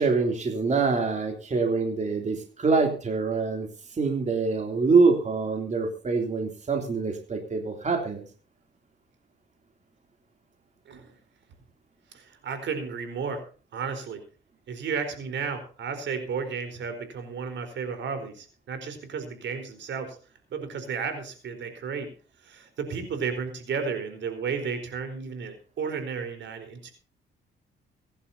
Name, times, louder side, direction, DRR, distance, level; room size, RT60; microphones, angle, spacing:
voice 1, 0.0-3.7 4.0-8.2, right 4 dB, 35° right, 3 dB, 3.1 m, -25 dB
voice 2, 12.1-13.4 13.7-14.2 14.7-20.2 20.5-22.1 22.4-26.9, right 5 dB, 65° right, 8 dB, 4.4 m, -33 dB
24.0 x 11.0 x 2.8 m, 0.39 s
cardioid pair, 90°, 20 cm